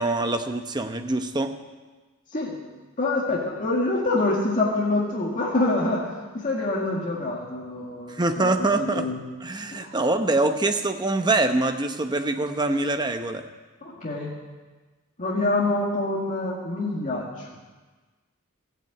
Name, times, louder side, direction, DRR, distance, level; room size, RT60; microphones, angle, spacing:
voice 1, 0.0-1.5 8.1-9.1 9.4-13.4, right 2 dB, 20° right, 7 dB, 0.8 m, -24 dB
voice 2, 3.0-9.2 9.7-10.0 13.8-14.3 15.2-17.6, left 2 dB, 35° left, -4 dB, 1.9 m, -26 dB
15.0 x 8.9 x 8.5 m, 1.3 s
head